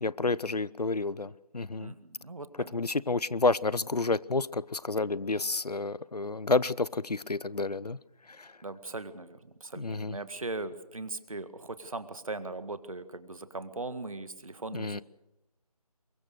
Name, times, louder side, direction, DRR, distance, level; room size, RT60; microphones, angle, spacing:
voice 1, 0.0-1.9 2.7-8.0 8.3-8.5 9.8-10.2 14.7-15.0, left 3 dB, 80° left, 22 dB, 0.7 m, -30 dB
voice 2, 1.8-2.8 8.6-15.0, right 2 dB, 60° right, 12 dB, 1.8 m, -39 dB
23.5 x 22.0 x 6.5 m, 0.94 s
figure-of-eight pair, 160°, 20 cm